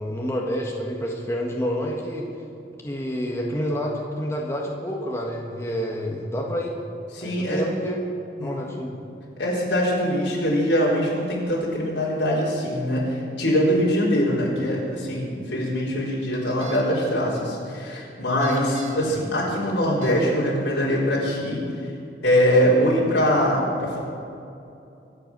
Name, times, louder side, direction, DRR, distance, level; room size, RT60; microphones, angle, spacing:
voice 1, 0.0-2.3 2.8-6.7 7.2-8.0 8.4-8.9 19.1-19.2, equal, 15° left, -2 dB, 1.6 m, -28 dB
voice 2, 7.1-7.6 8.4-8.7 9.4-21.6 22.2-24.0, equal, 90° left, -6 dB, 4.1 m, -23 dB
sound 1, 16.3-16.8 18.3-19.1 19.7-20.2, right 4 dB, 45° right, 2.0 m, -38 dB
24.5 x 8.3 x 6.2 m, 2.7 s
head